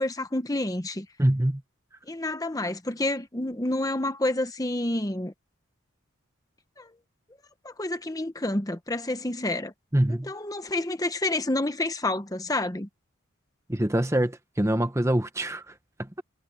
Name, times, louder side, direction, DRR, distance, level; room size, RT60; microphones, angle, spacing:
voice 1, 0.0-1.1 2.1-5.3 6.8-6.9 7.6-9.7 10.2-12.9, left 1 dB, 15° left, 1.0 m, -29 dB
voice 2, 1.2-1.6 9.9-10.3 13.7-16.2, right 1 dB, 15° right, 1.0 m, -25 dB
head